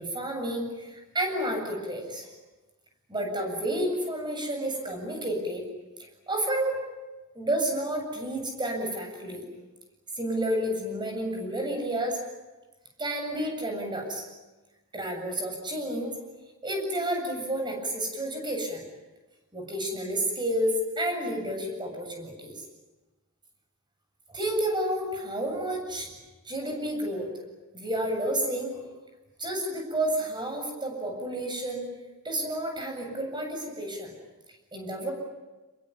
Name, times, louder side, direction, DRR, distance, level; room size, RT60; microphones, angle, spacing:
voice 1, 0.0-2.3 3.1-5.7 6.3-6.8 7.3-9.5 10.2-12.2 13.0-14.3 14.9-16.1 16.6-18.8 19.5-22.5 24.3-26.1 26.4-27.3 27.7-28.8 29.4-31.8 32.2-34.1 34.7-35.1, right 1 dB, 20° right, 3 dB, 7.7 m, -30 dB
27.0 x 22.5 x 9.5 m, 1.1 s
head